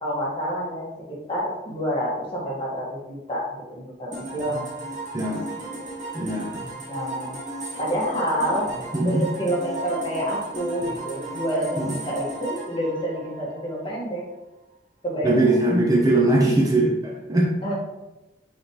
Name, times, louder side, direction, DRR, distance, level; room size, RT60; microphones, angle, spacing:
voice 1, 0.0-0.9 1.3-4.7 6.9-7.4 7.8-8.7 9.0-14.2 15.0-15.6 17.6-17.7, equal, 30° left, -4 dB, 1.9 m, -28 dB
sound 1, 4.1-13.8, right 2 dB, 45° right, 1.9 m, -35 dB
voice 2, 6.1-6.6 8.9-9.3 11.8-11.9 15.2-17.5, right 2 dB, 20° right, -2 dB, 0.7 m, -21 dB
6.2 x 4.8 x 3.3 m, 1.0 s
head